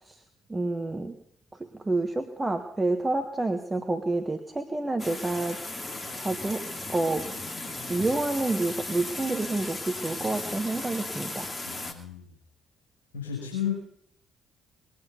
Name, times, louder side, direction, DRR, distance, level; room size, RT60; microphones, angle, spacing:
voice 1, 0.5-1.1 1.8-5.6 6.2-6.6 6.9-7.3 7.9-11.5, right 2 dB, 20° right, 6 dB, 1.4 m, -28 dB
sound 1, 5.0-11.9, left 2 dB, 25° left, 2.5 m, -36 dB
voice 2, 11.7-12.3 13.1-13.7, left 9 dB, 75° left, -4 dB, 5.7 m, -32 dB
21.0 x 9.7 x 7.0 m, 0.65 s
figure-of-eight pair, 45°, 0 cm